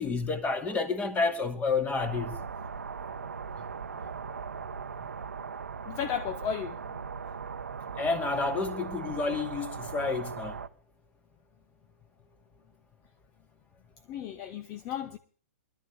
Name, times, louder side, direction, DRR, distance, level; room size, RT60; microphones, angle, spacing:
voice 1, 0.0-2.3 8.0-10.6, left 4 dB, 15° left, 2.3 m, -30 dB
sound 1, 2.0-10.7, right 6 dB, 85° right, 0.8 m, -39 dB
voice 2, 5.9-6.8 7.2-7.3 14.1-15.2, left 9 dB, 35° left, 1.0 m, -34 dB
21.0 x 13.0 x 3.4 m
hypercardioid pair, 120°, 8 cm